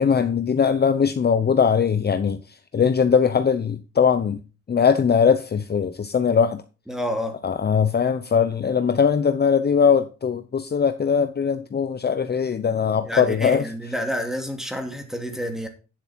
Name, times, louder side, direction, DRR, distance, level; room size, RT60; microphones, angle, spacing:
voice 1, 0.0-2.4 2.7-4.4 4.7-6.6 7.4-13.6, left 6 dB, 35° left, 0.8 m, -20 dB
voice 2, 6.9-7.4 13.0-15.7, equal, ahead, 2.7 m, -29 dB
10.0 x 7.6 x 4.4 m
cardioid pair, 90°, 30 cm